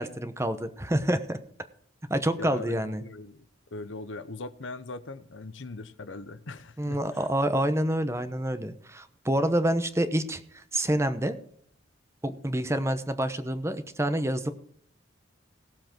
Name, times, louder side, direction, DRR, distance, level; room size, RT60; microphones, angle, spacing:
voice 1, 0.0-1.4 2.1-3.0 6.8-11.4 12.2-14.5, right 1 dB, 15° right, 11 dB, 0.9 m, -27 dB
voice 2, 2.4-3.5 3.7-7.3, left 3 dB, 85° left, 13 dB, 0.9 m, -40 dB
18.0 x 7.5 x 4.5 m, 0.64 s
head